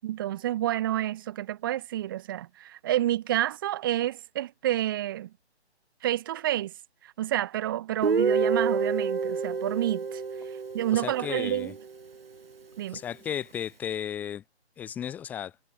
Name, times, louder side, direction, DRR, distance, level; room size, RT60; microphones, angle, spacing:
voice 1, 0.0-5.3 6.0-6.7 7.0-10.2 10.7-11.7 12.8-13.0, right 13 dB, 20° right, 7.4 m, -29 dB
Guitar, 8.0-11.9, right 5 dB, 55° right, 4.1 m, -28 dB
voice 2, 10.9-11.7 12.9-14.4 14.8-15.5, left 9 dB, 5° left, 2.7 m, -34 dB
hypercardioid pair, 175°, 34 cm